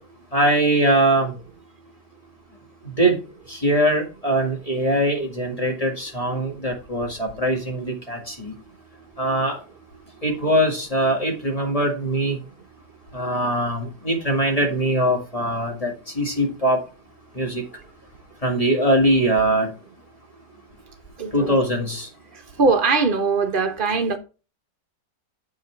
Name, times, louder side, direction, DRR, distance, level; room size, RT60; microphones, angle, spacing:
voice 1, 0.3-1.4 3.0-3.2 3.5-8.5 9.2-9.6 10.2-12.4 13.1-16.8 17.4-17.6 18.4-19.7 21.3-22.1, right 1 dB, 20° left, 2.0 m, -22 dB
voice 2, 21.2-21.6 22.6-24.2, right 4 dB, 35° right, 1.0 m, -21 dB
8.2 x 5.4 x 4.6 m
omnidirectional pair, 1.9 m